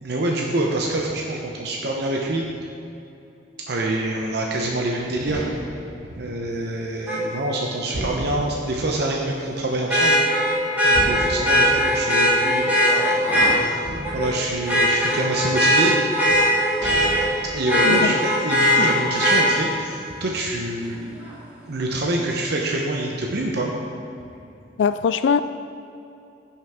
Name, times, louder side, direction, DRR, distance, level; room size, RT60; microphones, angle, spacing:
voice 1, 0.0-2.5 3.7-5.4 6.2-10.2 10.8-13.8 14.1-16.6 17.5-21.4 21.7-23.7, right 1 dB, 65° right, -1 dB, 0.8 m, -26 dB
sound 1, 4.6-7.4 7.9-9.9 10.2-10.3 10.9-13.3 13.8-15.4 16.2-16.3 16.6-18.4, right 1 dB, 85° right, 1.2 m, -35 dB
Vehicle horn car horn honking, 7.1-7.2 9.9-13.5 14.0-14.3 14.7-17.3 17.7-19.4 21.3-21.4, equal, 10° right, 2.2 m, -19 dB
voice 2, 17.8-18.2 24.8-25.4, left 6 dB, 80° left, 13 dB, 0.3 m, -21 dB
15.0 x 5.9 x 3.6 m, 2.7 s
head